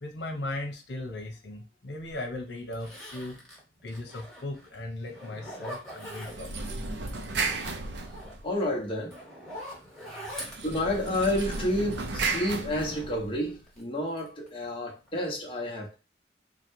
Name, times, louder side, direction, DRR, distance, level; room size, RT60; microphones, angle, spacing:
voice 1, 0.0-3.4 3.8-6.8 10.1-10.2, left 1 dB, 85° left, 0.9 m, -37 dB
Zipper (clothing), 2.1-2.2 2.7-4.7 5.1-6.7 7.0-12.2 12.6-13.8 14.2-14.6 15.0-15.1, equal, 5° left, 1.5 m, -44 dB
sound 1, 6.2-8.7 10.4-13.5, right 3 dB, 85° right, 0.7 m, -34 dB
voice 2, 8.4-9.1 10.6-15.9, left 1 dB, 30° left, 1.0 m, -30 dB
3.9 x 2.3 x 4.5 m
head